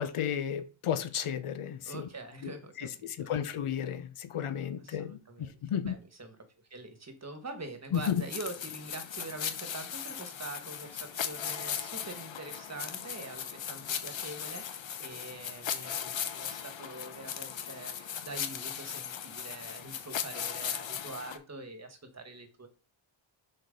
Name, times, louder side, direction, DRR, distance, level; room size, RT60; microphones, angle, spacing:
voice 1, 0.0-2.1 2.4-6.0 7.9-8.2, left 9 dB, 90° left, 0.9 m, -33 dB
voice 2, 1.8-3.3 4.8-6.4 6.7-22.7, right 2 dB, 30° right, 1.3 m, -44 dB
sound 1, 7.9-21.4, left 8 dB, 65° left, 0.9 m, -38 dB
6.3 x 4.5 x 5.0 m
wide cardioid pair, 145°, 49 cm